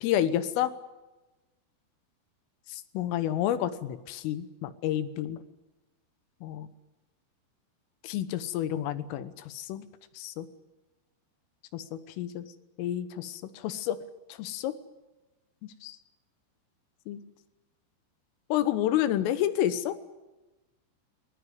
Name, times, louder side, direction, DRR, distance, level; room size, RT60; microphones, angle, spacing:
voice 1, 0.0-0.7 2.7-5.4 6.4-6.7 8.0-9.9 10.2-10.5 11.7-11.8 12.2-12.5 12.8-14.0 14.4-14.7 15.8-16.0 17.1-17.2 18.5-19.9, left 11 dB, 85° left, 12 dB, 3.8 m, -29 dB
21.5 x 20.5 x 9.5 m, 1.1 s
omnidirectional pair, 5.7 m